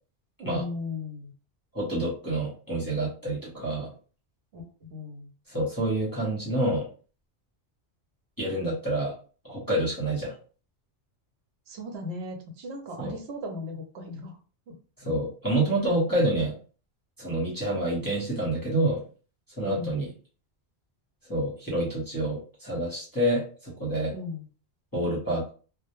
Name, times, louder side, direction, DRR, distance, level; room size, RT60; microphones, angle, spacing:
voice 1, 0.4-1.3 4.5-5.3 11.7-14.4 14.7-14.8 19.6-20.0 24.1-24.5, left 2 dB, 70° right, 3 dB, 0.9 m, -37 dB
voice 2, 1.7-3.9 5.5-6.9 8.4-9.1 9.4-10.3 13.0-13.2 15.0-16.5 17.2-19.0 19.6-20.1 21.2-24.1 24.9-25.5, right 1 dB, 20° left, -7 dB, 0.7 m, -28 dB
2.1 x 2.0 x 2.9 m, 0.38 s
omnidirectional pair, 1.1 m